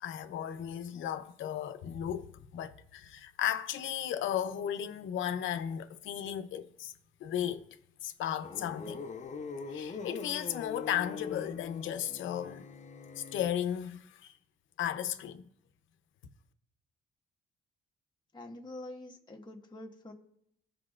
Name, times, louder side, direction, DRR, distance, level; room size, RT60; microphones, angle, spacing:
voice 1, 0.0-6.9 7.2-7.6 8.0-9.0 9.7-12.6 13.2-14.3 14.8-15.4, left 10 dB, 80° left, 0.7 m, -35 dB
sound 1, 8.4-13.5, left 5 dB, 35° left, 0.7 m, -43 dB
voice 2, 18.3-20.1, left 1 dB, 20° left, 1.4 m, -46 dB
15.5 x 5.3 x 2.4 m
cardioid pair, 90°, 20 cm